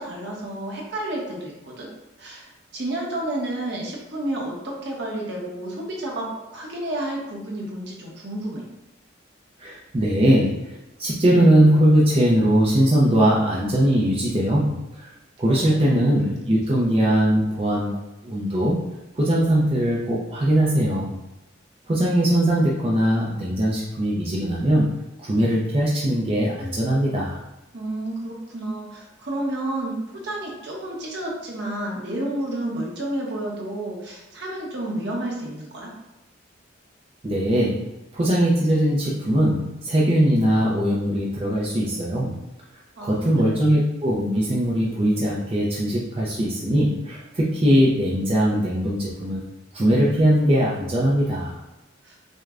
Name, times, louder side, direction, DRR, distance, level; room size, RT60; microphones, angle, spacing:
voice 1, 0.0-1.9 2.2-8.7 15.5-16.3 27.7-35.9 43.0-43.7 52.0-52.2, right 1 dB, 60° right, -2 dB, 1.0 m, -31 dB
voice 2, 9.6-15.1 15.4-18.8 19.1-21.1 21.9-27.4 37.2-37.8 38.1-42.4 43.0-49.4 49.7-51.6, right 1 dB, 30° right, -5 dB, 0.5 m, -20 dB
6.3 x 2.2 x 2.4 m, 0.99 s
head